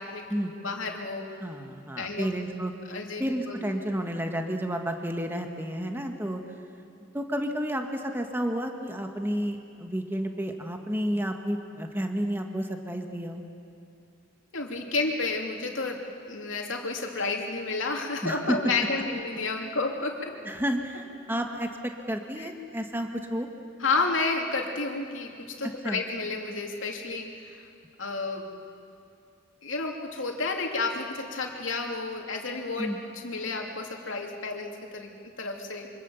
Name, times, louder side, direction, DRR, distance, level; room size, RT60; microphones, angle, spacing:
voice 1, 0.0-1.2 2.0-2.3 2.9-3.7 14.5-20.4 22.4-22.5 23.8-27.7 28.0-28.5 29.6-35.1 35.4-35.9, left 3 dB, 85° left, 2 dB, 2.7 m, -31 dB
voice 2, 1.4-2.7 3.2-6.4 7.1-13.4 18.2-18.6 20.4-23.5 25.8-26.0 32.8-33.0, equal, 10° right, 4 dB, 1.5 m, -31 dB
26.0 x 25.0 x 7.1 m, 2.4 s
head